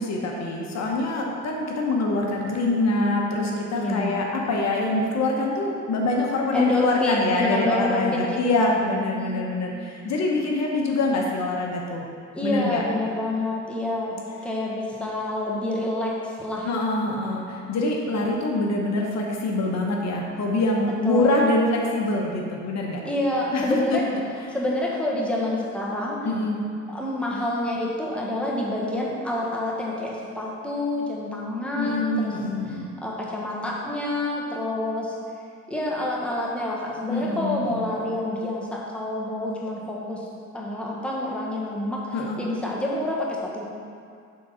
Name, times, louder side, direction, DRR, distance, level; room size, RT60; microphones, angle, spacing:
voice 1, 0.0-12.1 12.4-12.8 16.6-23.0 23.5-24.0 26.2-26.6 31.8-32.9 37.1-37.8 42.1-42.4, left 2 dB, 60° left, -1 dB, 1.0 m, -25 dB
voice 2, 3.7-4.2 6.5-8.7 9.1-9.4 12.3-16.7 17.0-17.4 21.0-21.4 23.0-24.2 24.5-26.3 26.9-32.3 33.0-35.2 35.7-40.3 40.5-43.6, left 1 dB, 5° left, -4 dB, 1.3 m, -28 dB
6.8 x 3.8 x 5.5 m, 2.3 s
cardioid pair, 90°, 30 cm